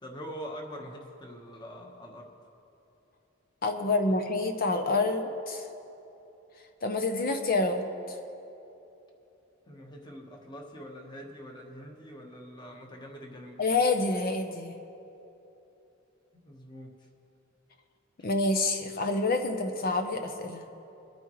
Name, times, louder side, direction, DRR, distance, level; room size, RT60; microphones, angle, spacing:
voice 1, 0.0-2.3 4.2-4.3 9.7-13.6 16.3-16.9, equal, 20° left, 1 dB, 1.3 m, -44 dB
voice 2, 3.6-5.7 6.8-7.8 13.6-14.7 18.2-20.6, left 3 dB, 45° left, 5 dB, 0.8 m, -27 dB
23.0 x 9.6 x 3.2 m, 2.9 s
head